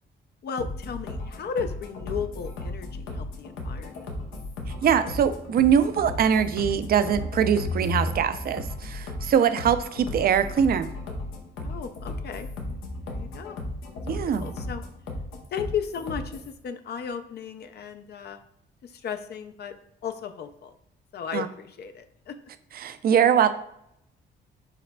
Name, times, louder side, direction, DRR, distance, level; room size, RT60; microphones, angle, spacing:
voice 1, 0.4-4.0 11.6-12.5 13.0-13.6 14.1-14.8 15.5-18.4 18.8-19.7 20.0-20.7 21.1-22.4, left 7 dB, 55° left, 8 dB, 0.4 m, -35 dB
sound 1, 0.6-16.6, left 2 dB, 90° left, 0.8 m, -35 dB
voice 2, 4.8-10.9 14.1-14.5 21.3-21.5 22.8-23.5, right 8 dB, 50° right, 12 dB, 0.4 m, -22 dB
4.8 x 4.0 x 2.2 m, 0.74 s
cardioid pair, 90°, 20 cm